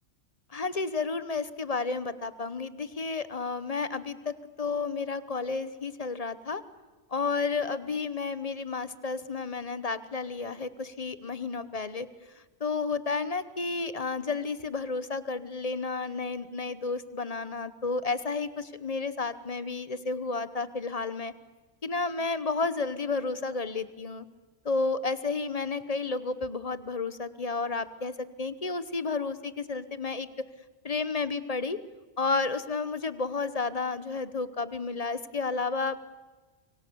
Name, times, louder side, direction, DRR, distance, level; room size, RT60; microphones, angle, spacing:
voice 1, 0.5-6.6 7.1-12.1 12.6-21.3 21.8-24.2 24.6-30.3 30.8-31.8 32.2-36.0, left 4 dB, 35° left, 14 dB, 1.1 m, -31 dB
25.0 x 25.0 x 7.0 m, 1.3 s
omnidirectional pair, 1.2 m